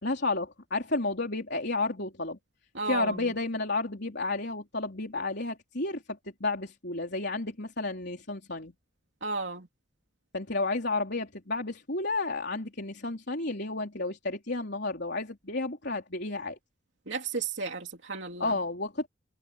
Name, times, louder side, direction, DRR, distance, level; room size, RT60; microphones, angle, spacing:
voice 1, 0.0-2.4 2.9-8.7 10.3-16.6 18.4-19.1, left 2 dB, 55° left, 4.0 m, -31 dB
voice 2, 2.7-3.2 9.2-9.7 17.1-18.5, right 4 dB, 65° right, 3.1 m, -33 dB
head